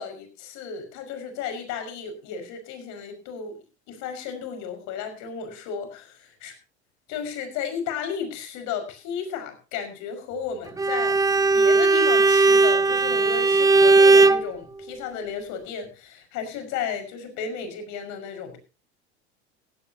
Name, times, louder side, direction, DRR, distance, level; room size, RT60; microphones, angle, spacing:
voice 1, 0.0-3.6 3.9-6.5 7.1-18.6, left 6 dB, 60° left, 7 dB, 5.8 m, -34 dB
Bowed string instrument, 10.8-14.5, right 3 dB, 10° right, 0.7 m, -17 dB
16.5 x 16.5 x 2.9 m, 0.33 s
hypercardioid pair, 85°, 33 cm